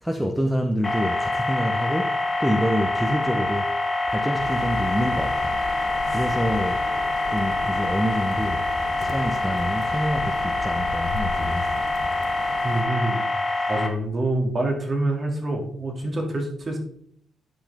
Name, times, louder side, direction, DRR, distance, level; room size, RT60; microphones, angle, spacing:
voice 1, 0.0-3.7 4.1-5.6 6.1-6.8 7.3-8.7 9.0-11.9, equal, 5° right, 0.7 m, -27 dB
sound 1, 0.8-13.9, left 2 dB, 15° left, 1.6 m, -25 dB
sound 2, 4.4-12.8, left 4 dB, 85° left, 2.6 m, -37 dB
Computer keyboard, 7.2-12.8, left 2 dB, 65° left, 1.9 m, -41 dB
voice 2, 12.6-13.2 13.7-16.8, right 2 dB, 35° right, 2.2 m, -26 dB
10.0 x 5.6 x 3.5 m
cardioid pair, 90°, 0 cm